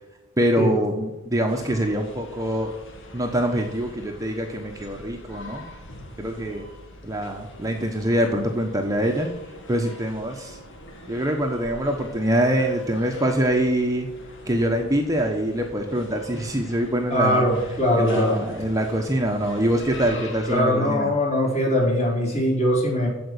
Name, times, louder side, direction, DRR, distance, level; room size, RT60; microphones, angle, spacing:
voice 1, 0.4-2.7 3.1-5.6 6.2-6.7 7.0-9.3 9.7-10.6 11.1-14.1 14.5-17.5 17.9-21.1, right 1 dB, 15° right, 2 dB, 1.1 m, -24 dB
sound 1, 1.5-20.6, left 1 dB, 60° left, 2.4 m, -44 dB
voice 2, 17.1-18.4 20.5-23.1, equal, 30° left, -3 dB, 4.7 m, -21 dB
15.0 x 5.2 x 8.1 m, 1.1 s
head